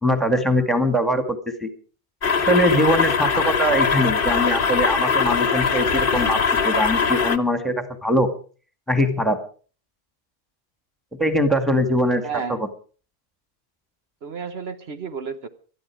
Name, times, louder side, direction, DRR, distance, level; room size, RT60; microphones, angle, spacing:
voice 1, 0.0-1.7 2.4-8.3 8.9-9.4 11.2-12.2 12.5-12.7, equal, ahead, 7 dB, 2.0 m, -22 dB
sound 1, 2.2-7.4, left 5 dB, 55° left, 1.1 m, -21 dB
voice 2, 12.2-12.6 14.2-15.5, right 6 dB, 65° right, 9 dB, 1.3 m, -31 dB
19.0 x 13.5 x 4.8 m, 0.40 s
omnidirectional pair, 1.1 m